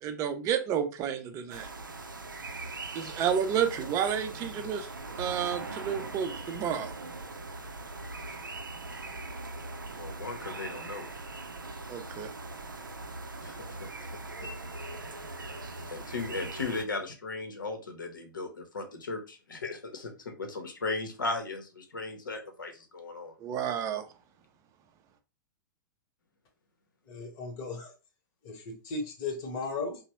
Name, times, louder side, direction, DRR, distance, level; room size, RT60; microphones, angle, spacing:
voice 1, 0.0-1.7 2.9-4.9 5.2-6.9 11.9-12.3 23.4-24.1, right 8 dB, 30° right, 8 dB, 0.5 m, -30 dB
sound 1, 1.5-16.9, right 2 dB, 85° right, 0.4 m, -41 dB
voice 2, 10.0-11.1 13.4-13.8 15.9-23.3, left 3 dB, 75° left, 5 dB, 0.7 m, -36 dB
voice 3, 27.1-27.9 28.4-30.0, left 3 dB, 40° left, 2 dB, 1.0 m, -36 dB
3.0 x 2.0 x 2.9 m, 0.32 s
figure-of-eight pair, 105°, 11 cm